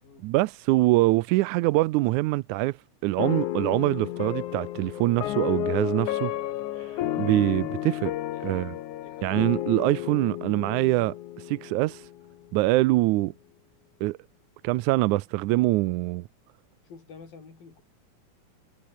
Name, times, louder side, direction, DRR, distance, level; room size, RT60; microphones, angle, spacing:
voice 1, 0.2-2.8 3.0-6.3 6.8-6.9 7.2-8.1 8.4-8.7 9.2-11.1 11.5-12.0 12.5-13.3 14.0-14.2 14.6-16.2, right 19 dB, 80° right, 1.8 m, -24 dB
sound 1, 3.2-12.3, left 13 dB, 70° left, 2.4 m, -32 dB
voice 2, 8.3-8.7 9.0-9.3 12.8-13.0 16.9-17.8, left 5 dB, 90° left, 7.6 m, -49 dB
omnidirectional pair, 4.0 m